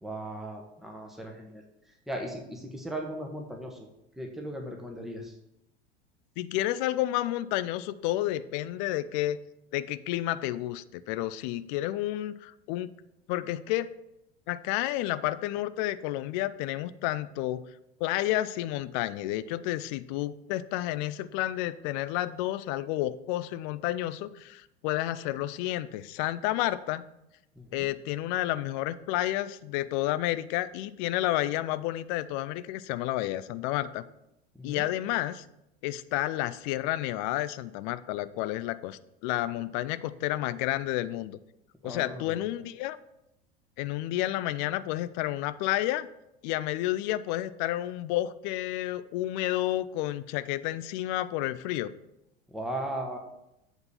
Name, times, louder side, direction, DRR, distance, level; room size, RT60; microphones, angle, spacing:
voice 1, 0.0-1.6 2.1-3.9 4.2-5.4 27.5-27.9 34.6-34.9 41.8-42.5 52.5-53.2, right 1 dB, ahead, 1 dB, 1.2 m, -37 dB
voice 2, 6.4-9.4 9.7-12.9 13.3-13.9 14.5-17.6 18.0-27.0 27.7-34.0 34.6-35.5 35.8-41.4 41.8-43.0 43.8-46.1 46.4-51.9, left 15 dB, 45° left, 14 dB, 0.5 m, -30 dB
8.0 x 4.0 x 6.8 m, 0.86 s
figure-of-eight pair, 80°, 32 cm